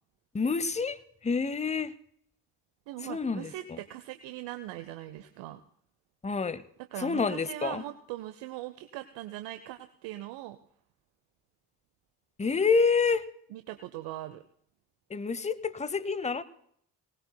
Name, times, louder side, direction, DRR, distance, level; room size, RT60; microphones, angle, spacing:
voice 1, 0.3-1.0 1.2-1.9 3.1-3.5 6.2-6.6 7.0-7.8 12.4-13.2 15.1-16.4, left 5 dB, 15° left, 17 dB, 0.7 m, -27 dB
voice 2, 2.9-5.6 6.9-10.6 13.5-14.4, right 14 dB, 70° right, 9 dB, 0.7 m, -40 dB
19.0 x 18.5 x 2.2 m, 0.67 s
hypercardioid pair, 45°, 45 cm